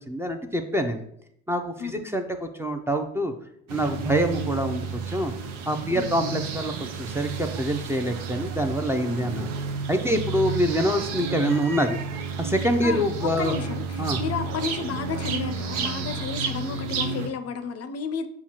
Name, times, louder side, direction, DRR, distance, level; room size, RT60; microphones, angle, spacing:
voice 1, 0.1-1.0 1.5-3.3 3.7-5.3 5.7-9.5 9.9-12.0 12.4-13.5 14.0-14.2, equal, 10° right, 5 dB, 0.5 m, -25 dB
sound 1, 3.7-17.3, right 4 dB, 75° right, 0.7 m, -31 dB
voice 2, 12.8-18.3, left 5 dB, 50° left, 9 dB, 0.5 m, -32 dB
6.9 x 2.3 x 2.9 m, 0.72 s
hypercardioid pair, 55°, 33 cm